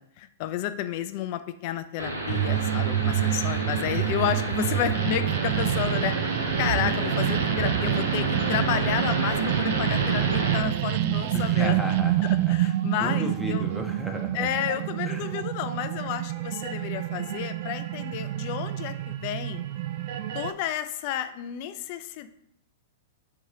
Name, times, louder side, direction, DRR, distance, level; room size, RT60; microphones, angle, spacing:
voice 1, 0.0-6.2 6.6-11.8 12.2-13.7 14.3-19.6 20.3-22.3, left 11 dB, 45° left, 11 dB, 0.4 m, -31 dB
sound 1, 2.0-10.6, right 1 dB, 90° right, 0.8 m, -30 dB
sound 2, 2.3-20.5, right 13 dB, 50° right, 0.4 m, -27 dB
voice 2, 11.3-12.3 13.0-14.4 15.0-15.2, equal, 5° right, 2 dB, 0.7 m, -33 dB
3.6 x 2.8 x 4.6 m, 0.74 s
figure-of-eight pair, 105°, 0 cm